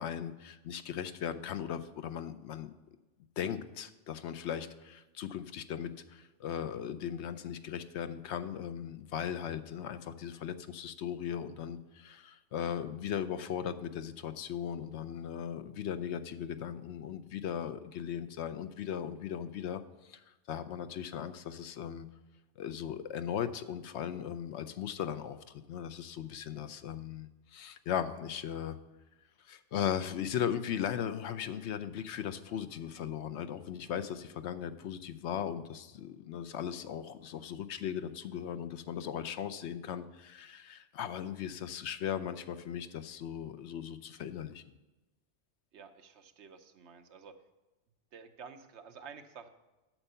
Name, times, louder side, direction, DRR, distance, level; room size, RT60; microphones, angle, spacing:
voice 1, 0.0-2.7 3.4-22.1 22.6-28.8 29.4-44.6, left 9 dB, 70° left, 11 dB, 0.8 m, -38 dB
voice 2, 45.7-47.3 48.1-49.5, right 6 dB, 70° right, 8 dB, 1.0 m, -51 dB
9.0 x 6.7 x 5.5 m, 1.1 s
omnidirectional pair, 1.3 m